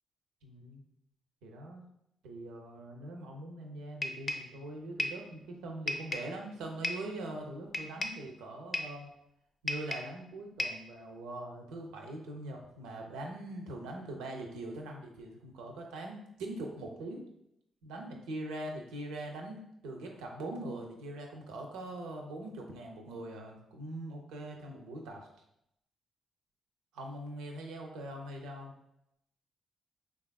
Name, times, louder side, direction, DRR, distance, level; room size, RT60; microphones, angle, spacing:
voice 1, 0.4-0.8 1.4-1.8 2.2-9.1 9.6-17.2 17.8-25.3 26.9-28.7, right 1 dB, 90° right, 1 dB, 0.4 m, -42 dB
sound 1, 4.0-4.5 5.0-5.3 5.9-6.3 6.8-7.1 7.7-8.2 8.7-9.0 9.7-10.2 10.6-10.9, left 2 dB, 40° left, 0.4 m, -35 dB
3.3 x 2.3 x 2.2 m, 0.81 s
supercardioid pair, 55°, 0 cm